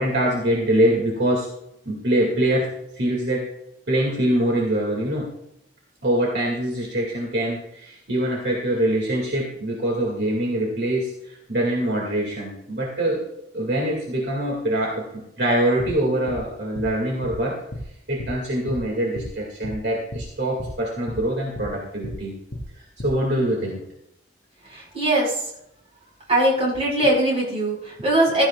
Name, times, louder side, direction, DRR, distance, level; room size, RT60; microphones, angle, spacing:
voice 1, 0.0-1.5 1.9-3.5 3.9-5.3 6.0-13.3 13.5-17.6 18.1-22.3 22.8-23.8, right 1 dB, 55° right, -2 dB, 2.2 m, -24 dB
sound 1, 15.8-16.0 16.3-16.4 16.8-16.9 17.2-17.4 17.7-17.9 18.2-18.4 18.7-18.8 19.2-19.3 19.6-19.8 20.1-20.3 20.6-20.8 21.1-21.2 21.6-21.7 22.0-22.2 22.5-22.7 23.0-23.2, equal, 60° left, 4.3 m, -33 dB
voice 2, 24.6-25.5 26.3-28.4, right 1 dB, 30° right, -4 dB, 5.2 m, -21 dB
16.0 x 14.0 x 2.4 m, 0.78 s
head